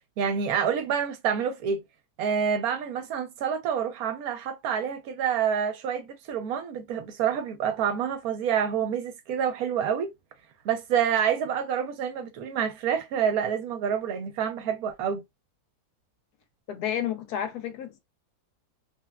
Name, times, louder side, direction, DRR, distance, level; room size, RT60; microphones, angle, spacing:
voice 1, 0.2-1.8 2.2-10.1 10.6-15.2, right 8 dB, 75° right, 1.1 m, -27 dB
voice 2, 16.7-18.0, left 10 dB, 85° left, 1.2 m, -31 dB
3.3 x 2.1 x 2.3 m
omnidirectional pair, 1.6 m